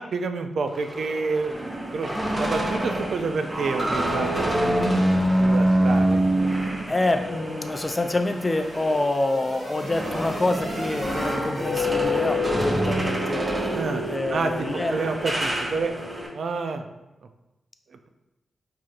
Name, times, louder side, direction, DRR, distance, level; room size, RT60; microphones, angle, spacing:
voice 1, 0.0-1.5 1.9-4.8 5.1-6.2 13.7-14.0 14.3-15.9 16.3-16.8, right 4 dB, 70° right, 7 dB, 0.3 m, -29 dB
sound 1, 0.7-9.1 9.4-16.3, equal, 25° right, 0.9 m, -26 dB
voice 2, 6.9-15.0, left 2 dB, 25° left, 7 dB, 0.3 m, -27 dB
sound 2, 7.6-12.5, equal, 90° right, 1.3 m, -39 dB
4.7 x 2.8 x 2.4 m, 0.98 s
cardioid pair, 85°, 0 cm